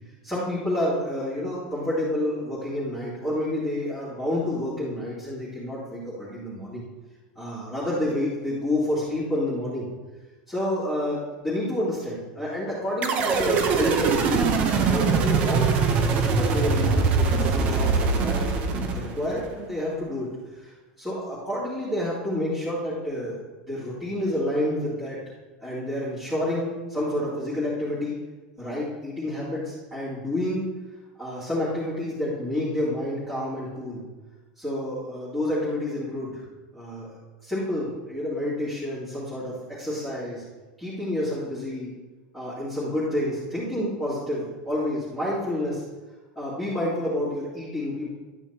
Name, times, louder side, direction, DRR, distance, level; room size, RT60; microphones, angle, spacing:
voice 1, 0.2-6.8 7.4-9.9 10.5-20.3 20.6-23.4 23.7-25.2 25.6-28.2 28.6-30.6 31.2-34.0 34.6-36.4 36.7-37.1 37.4-40.4 40.8-42.0 42.3-45.8 46.4-48.1, left 1 dB, ahead, -13 dB, 2.4 m, -29 dB
sound 1, 13.0-19.5, right 4 dB, 30° right, 0.8 m, -22 dB
12.0 x 9.0 x 2.9 m, 1.2 s
supercardioid pair, 170°, 4 cm